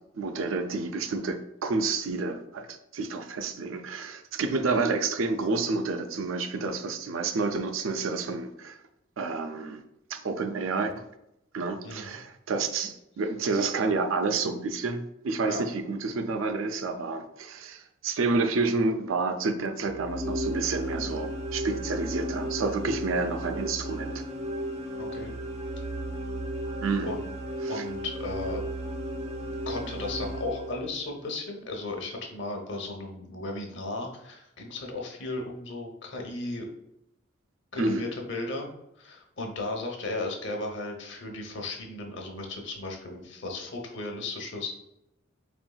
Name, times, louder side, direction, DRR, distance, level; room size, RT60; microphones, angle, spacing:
voice 1, 0.1-8.8 9.2-9.8 10.1-11.1 11.5-24.2 26.8-27.1 27.6-27.8 37.8-38.1, right 3 dB, 85° right, 0.4 m, -29 dB
voice 2, 11.8-12.2 15.5-15.6 25.0-25.3 27.0-27.3 27.7-28.6 29.7-36.7 37.7-38.7 39.0-44.7, left 2 dB, 60° left, 0.8 m, -35 dB
sound 1, 19.8-31.1, equal, 35° right, 0.5 m, -34 dB
4.4 x 3.5 x 2.3 m
head